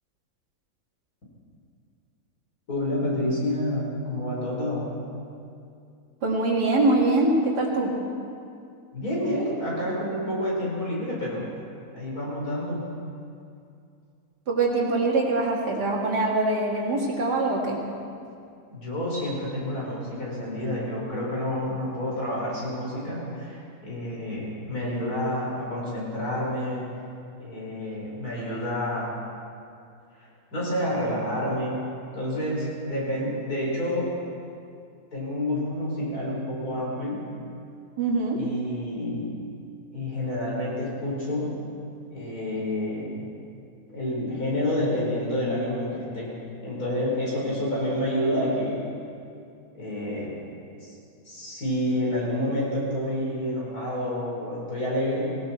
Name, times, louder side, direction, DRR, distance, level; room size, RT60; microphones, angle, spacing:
voice 1, 2.7-5.0 8.9-11.5 11.9-12.9 18.7-26.9 27.4-29.1 30.2-31.8 32.1-34.1 35.1-37.3 38.3-39.4 39.9-41.6 42.1-43.3 43.9-48.8 49.7-50.4 50.8-50.9 51.3-55.3, left 1 dB, 65° left, -5 dB, 5.2 m, -29 dB
voice 2, 6.2-7.9 14.5-17.8 38.0-38.4, right 2 dB, 85° right, -1 dB, 2.6 m, -23 dB
18.5 x 17.5 x 4.4 m, 2.4 s
omnidirectional pair, 1.7 m